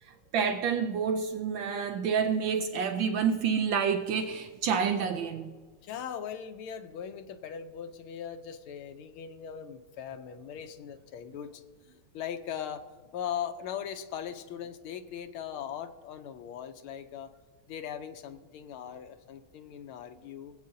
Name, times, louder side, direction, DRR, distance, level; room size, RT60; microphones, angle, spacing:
voice 1, 0.0-5.5, right 6 dB, 75° right, 1.3 m, -29 dB
voice 2, 5.8-11.6 12.1-12.8 13.1-17.3 17.7-20.5, left 8 dB, 85° left, 1.6 m, -39 dB
21.0 x 8.1 x 2.7 m
omnidirectional pair, 2.3 m